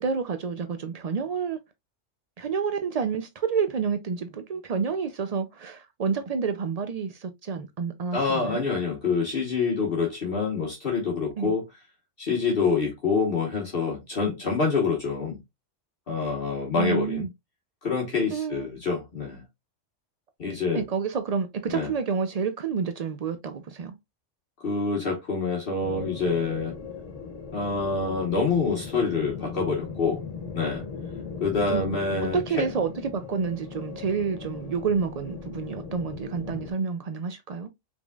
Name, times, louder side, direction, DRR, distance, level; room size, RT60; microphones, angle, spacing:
voice 1, 0.0-1.6 2.4-8.6 11.4-11.5 16.7-17.3 18.3-18.7 20.7-23.9 31.7-31.8 32.2-37.7, right 6 dB, 70° right, 0.3 m, -29 dB
voice 2, 8.1-11.7 12.2-15.4 16.1-17.2 17.8-19.4 20.4-20.8 21.7-21.9 24.6-26.7 27.5-30.2 30.5-30.8 31.4-32.7, left 4 dB, 50° left, 1.4 m, -26 dB
sound 1, 25.8-36.7, left 5 dB, 75° left, 1.3 m, -38 dB
5.1 x 3.5 x 2.3 m
omnidirectional pair, 1.3 m